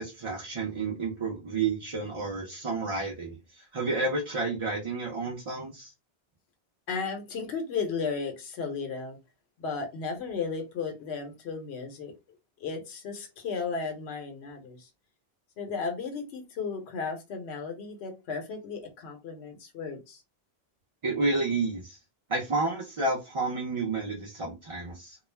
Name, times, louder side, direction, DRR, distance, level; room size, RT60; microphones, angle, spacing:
voice 1, 0.0-5.9 21.0-22.0 22.3-25.2, right 3 dB, 40° right, 0.5 m, -30 dB
voice 2, 6.9-9.2 9.6-12.1 12.6-14.9 15.6-20.2, left 5 dB, 90° left, 0.9 m, -34 dB
2.3 x 2.0 x 3.1 m
omnidirectional pair, 1.1 m